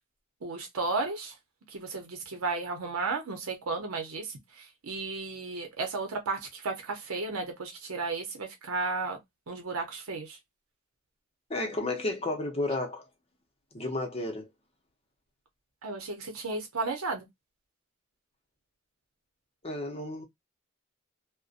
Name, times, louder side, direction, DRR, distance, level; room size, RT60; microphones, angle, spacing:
voice 1, 0.4-1.3 1.7-9.2 9.5-10.4 15.8-17.3, right 3 dB, 90° right, 0.7 m, -34 dB
voice 2, 11.5-13.0 13.7-14.5 19.6-20.2, left 2 dB, 30° left, 0.7 m, -32 dB
2.6 x 2.1 x 2.4 m
head